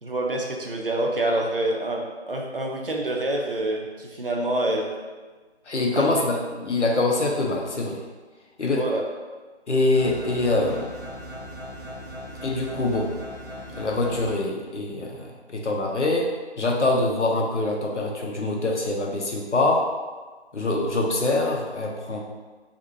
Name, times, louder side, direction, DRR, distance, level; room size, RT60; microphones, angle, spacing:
voice 1, 0.0-4.9 5.9-6.1 8.6-9.0, right 1 dB, 55° right, 0 dB, 0.5 m, -27 dB
voice 2, 5.7-8.0 8.6-8.8 9.7-10.9 12.4-13.1 13.7-16.3 16.6-19.8 20.5-22.2, left 2 dB, 90° left, 0 dB, 0.7 m, -24 dB
sound 1, 9.9-14.3, equal, ahead, 0.6 m, -38 dB
2.6 x 2.4 x 2.7 m, 1.3 s
figure-of-eight pair, 165°, 34 cm